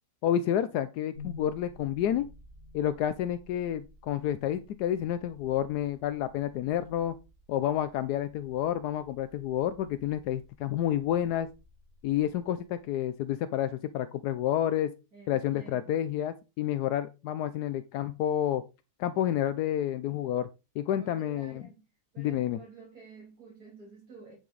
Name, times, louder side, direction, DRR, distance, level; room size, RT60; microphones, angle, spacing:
voice 1, 0.2-2.3 2.7-7.1 7.5-11.5 12.0-14.9 15.3-18.6 19.0-20.5 20.8-21.6 22.2-22.6, left 11 dB, 80° left, 1.1 m, -29 dB
sound 1, 1.1-13.2, left 3 dB, 30° right, 5.5 m, -53 dB
voice 2, 10.8-11.3 15.1-16.0 21.0-21.9 22.1-24.3, right 4 dB, 60° right, 3.2 m, -51 dB
10.0 x 5.9 x 3.9 m
omnidirectional pair, 1.7 m